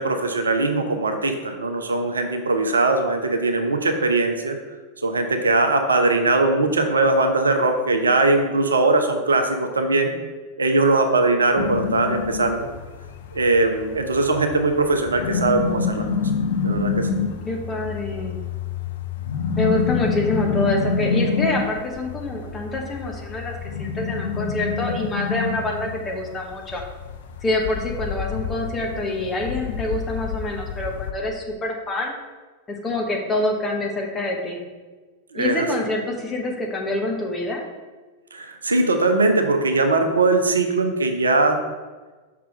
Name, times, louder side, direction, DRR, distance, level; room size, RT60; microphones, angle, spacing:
voice 1, 0.0-4.6 5.0-10.1 10.6-12.7 13.3-16.1 16.6-17.1 35.3-35.7 38.3-41.6, right 2 dB, 75° right, 5 dB, 0.7 m, -20 dB
sound 1, 11.6-31.1, left 5 dB, 60° left, 0.5 m, -27 dB
voice 2, 17.4-18.4 19.6-26.8 27.4-32.1 32.7-34.6 35.3-37.6, left 2 dB, 15° left, 0 dB, 1.3 m, -26 dB
5.8 x 3.6 x 5.8 m, 1.3 s
figure-of-eight pair, 90°, 0 cm